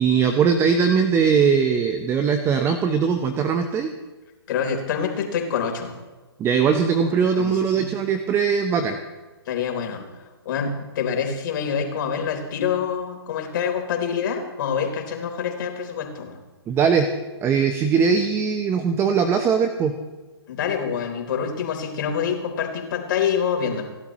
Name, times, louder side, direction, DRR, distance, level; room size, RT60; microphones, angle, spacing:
voice 1, 0.0-3.9 6.4-9.0 16.7-17.1 17.4-19.9, right 6 dB, 20° right, 8 dB, 1.0 m, -20 dB
voice 2, 4.5-5.9 7.0-7.1 7.4-7.9 9.5-10.1 10.5-16.4 20.5-23.9, left 7 dB, 50° left, 3 dB, 3.8 m, -26 dB
29.5 x 12.0 x 3.1 m, 1.2 s
hypercardioid pair, 130°, 14 cm